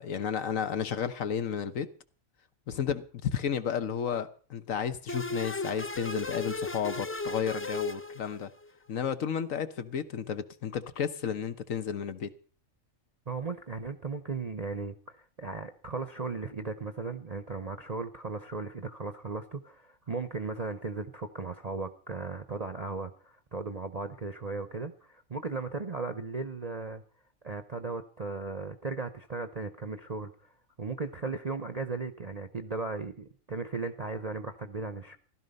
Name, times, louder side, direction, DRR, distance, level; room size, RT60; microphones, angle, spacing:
voice 1, 0.0-1.9 2.7-8.5 8.9-12.3, left 8 dB, 75° left, 1.4 m, -32 dB
sound 1, 5.1-8.7, left 2 dB, 20° left, 0.3 m, -35 dB
voice 2, 13.3-27.0 27.4-30.5 30.8-35.2, right 4 dB, 35° right, 0.8 m, -36 dB
15.5 x 12.5 x 5.3 m
omnidirectional pair, 1.4 m